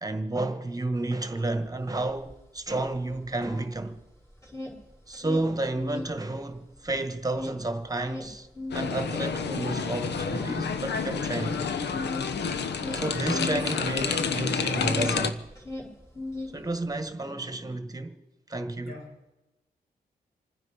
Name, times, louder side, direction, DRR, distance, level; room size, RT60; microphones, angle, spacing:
voice 1, 0.0-4.0 5.1-8.5 8.7-11.6 12.9-15.4 16.5-18.2 18.5-19.0, right 2 dB, 20° right, 1.6 m, -31 dB
sound 1, 1.7-4.0 4.3-6.2 6.5-15.2 15.5-17.0, left 2 dB, 15° left, 4.9 m, -38 dB
sound 2, 8.7-15.3, left 5 dB, 80° left, 1.0 m, -29 dB
voice 2, 11.3-11.7 18.8-19.3, left 2 dB, 60° left, 7.1 m, -44 dB
28.0 x 9.8 x 5.1 m
cardioid pair, 70°, 17 cm